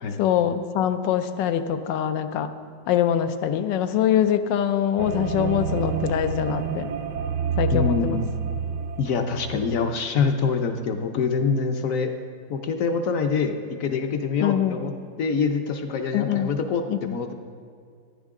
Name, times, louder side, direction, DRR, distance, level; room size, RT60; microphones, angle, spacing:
voice 1, 0.2-2.5 2.9-6.9 7.6-8.2 14.4-14.8 16.1-16.5 16.9-17.2, left 10 dB, 90° left, 9 dB, 1.3 m, -23 dB
sound 1, 5.0-10.0, right 6 dB, 75° right, 1.2 m, -29 dB
voice 2, 7.7-8.3 9.0-12.1 12.5-14.9 15.2-17.3, left 5 dB, 65° left, 6 dB, 0.9 m, -25 dB
15.0 x 9.8 x 3.7 m, 2.2 s
omnidirectional pair, 1.9 m